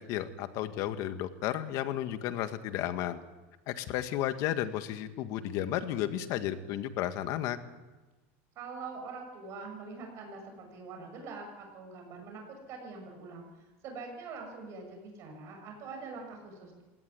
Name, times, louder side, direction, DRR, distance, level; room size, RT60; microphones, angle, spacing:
voice 1, 0.0-3.2 3.7-7.6, left 12 dB, 55° left, 9 dB, 1.8 m, -33 dB
voice 2, 8.6-12.4 12.7-16.8, right 4 dB, 50° right, 3 dB, 6.9 m, -44 dB
21.0 x 17.5 x 9.6 m, 1.2 s
supercardioid pair, 125°, 7 cm